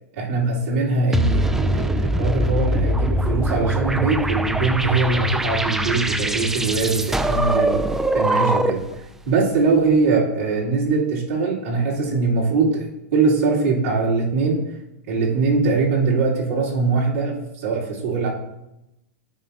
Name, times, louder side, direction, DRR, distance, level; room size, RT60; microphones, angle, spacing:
voice 1, 0.1-7.8 8.1-8.8 9.2-14.6 15.1-18.3, right 3 dB, 80° right, -6 dB, 2.9 m, -21 dB
sound 1, 1.1-8.9, right 1 dB, 5° right, 0.4 m, -22 dB
13.0 x 4.8 x 2.8 m, 0.88 s
hypercardioid pair, 135°, 8 cm